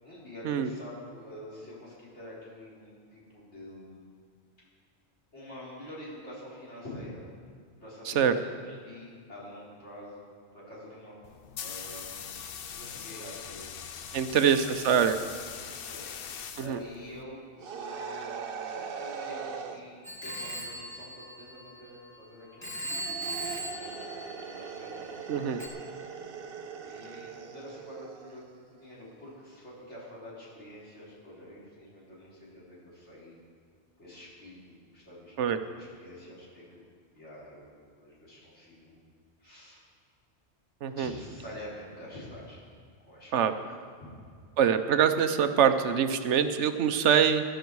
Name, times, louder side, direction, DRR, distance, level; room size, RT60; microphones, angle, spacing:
voice 1, 0.0-4.1 5.3-7.2 7.8-10.2 10.5-11.1 11.6-12.4 12.7-13.7 14.1-14.6 15.8-22.8 23.3-25.6 26.8-33.3 34.0-35.4 35.6-36.8 37.1-39.0 39.4-39.8 40.9-42.6 43.1-43.6, left 1 dB, 75° left, -8 dB, 4.6 m, -47 dB
sound 1, 11.2-17.2, left 7 dB, 60° left, 0.8 m, -42 dB
voice 2, 14.1-15.2 16.6-16.8 25.3-25.6 35.4-35.6 40.8-41.1 43.3-43.5 44.6-47.4, right 8 dB, 80° right, 9 dB, 1.1 m, -24 dB
sound 2, 17.6-19.8 22.8-28.4, right 6 dB, 55° right, 1.0 m, -40 dB
Telephone, 20.0-22.2 22.6-24.9 25.6-25.7, right 1 dB, 20° left, 1.4 m, -39 dB
16.0 x 11.5 x 4.7 m, 2.1 s
omnidirectional pair, 1.2 m